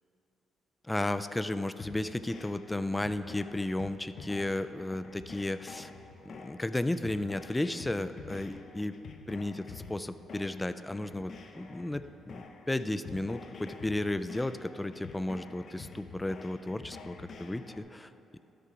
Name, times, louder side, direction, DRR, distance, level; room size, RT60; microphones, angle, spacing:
voice 1, 0.9-5.9 6.3-9.0 9.3-18.4, left 1 dB, 10° left, 12 dB, 0.4 m, -34 dB
sound 1, 1.8-17.8, left 4 dB, 55° left, 0.7 m, -48 dB
12.5 x 6.7 x 4.9 m, 3.0 s
cardioid pair, 90°, 0 cm